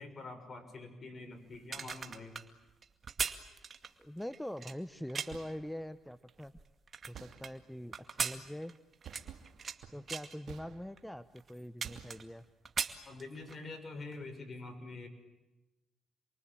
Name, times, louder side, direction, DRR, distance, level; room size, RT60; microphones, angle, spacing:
voice 1, 0.0-2.4 13.0-15.1, left 3 dB, 35° left, 7 dB, 6.4 m, -46 dB
sound 1, 1.5-5.5 6.1-7.5 7.9-9.8 10.1-10.4 11.0-11.1 11.4-12.4 12.6-13.6 14.0-14.2, right 6 dB, 40° right, 2.2 m, -39 dB
voice 2, 4.0-6.5 7.1-8.7 9.9-12.4, equal, 5° left, 12 dB, 0.9 m, -43 dB
sound 2, 5.1-5.8 7.1-7.9 9.0-11.2 11.8-12.6, right 8 dB, 70° right, 2.2 m, -53 dB
28.5 x 23.0 x 8.7 m, 1.0 s
cardioid pair, 90°, 0 cm